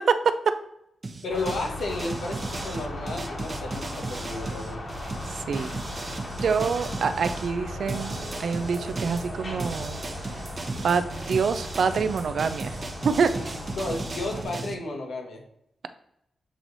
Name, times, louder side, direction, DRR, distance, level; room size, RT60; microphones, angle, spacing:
sound 1, 1.0-7.5 7.9-14.7, right 3 dB, 40° right, 0.9 m, -36 dB
voice 1, 1.2-4.8 13.7-15.4, left 2 dB, 85° left, 2 dB, 1.3 m, -33 dB
sound 2, 1.3-14.4, left 1 dB, 45° left, 2.2 m, -37 dB
voice 2, 6.4-10.0 10.8-12.8 13.0-13.3, right 5 dB, 75° right, 11 dB, 0.5 m, -26 dB
7.7 x 3.2 x 4.0 m, 0.80 s
cardioid pair, 75°, 0 cm